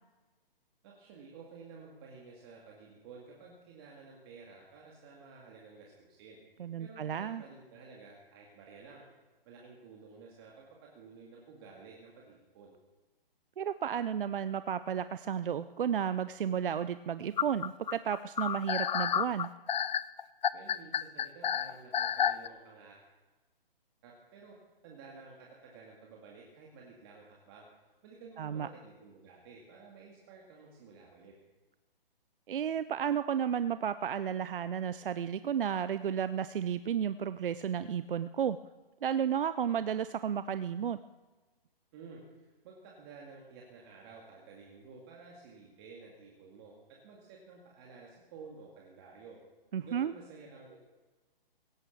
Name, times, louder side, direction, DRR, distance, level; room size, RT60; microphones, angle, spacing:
voice 1, 0.8-6.4 6.8-9.1 9.5-12.7 20.5-23.0 24.0-24.6 24.8-27.6 28.0-31.3 41.9-49.4 49.8-50.8, right 4 dB, 25° right, -2 dB, 2.1 m, -52 dB
voice 2, 6.6-7.4 13.6-19.5 28.4-28.7 32.5-38.6 39.0-41.0 49.7-50.1, right 8 dB, 65° right, 13 dB, 0.6 m, -33 dB
sound 1, 17.4-22.5, left 9 dB, 50° left, 0.5 m, -30 dB
17.0 x 9.3 x 7.0 m, 1.2 s
hypercardioid pair, 160°, 30 cm